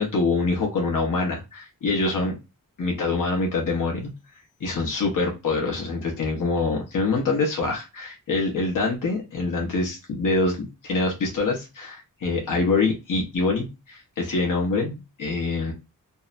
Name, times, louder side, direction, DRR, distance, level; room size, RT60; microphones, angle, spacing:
voice 1, 0.0-2.3 2.8-4.1 4.6-15.7, left 3 dB, 65° left, 0 dB, 0.8 m, -25 dB
2.6 x 2.1 x 2.4 m, 0.26 s
wide cardioid pair, 125°, 35 cm